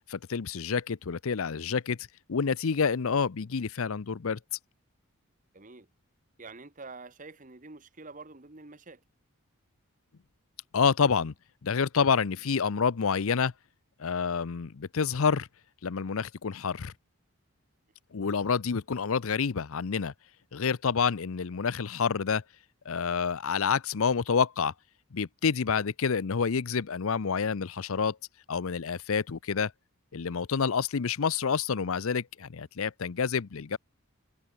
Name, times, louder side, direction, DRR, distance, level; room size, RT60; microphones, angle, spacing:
voice 1, 0.1-2.0 2.3-4.4 10.7-11.3 11.6-13.5 14.0-15.5 15.8-16.9 18.1-20.1 20.5-22.4 22.9-24.7 25.1-28.2 28.5-29.7 30.1-33.8, left 6 dB, 65° left, 0.6 m, -28 dB
voice 2, 5.5-5.9 6.4-9.0, right 3 dB, 35° right, 1.3 m, -47 dB
head